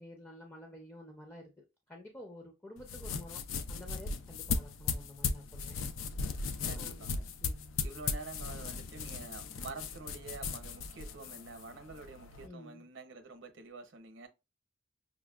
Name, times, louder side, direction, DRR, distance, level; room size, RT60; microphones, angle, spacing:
voice 1, 0.0-3.4 3.7-5.8 6.7-7.1 7.4-7.8 12.4-12.9, left 1 dB, 10° left, 0.5 m, -50 dB
sound 1, 2.8-12.5, left 5 dB, 80° left, 0.4 m, -37 dB
voice 2, 6.6-7.3 7.8-14.3, right 3 dB, 65° right, 0.7 m, -48 dB
5.9 x 2.1 x 2.3 m
head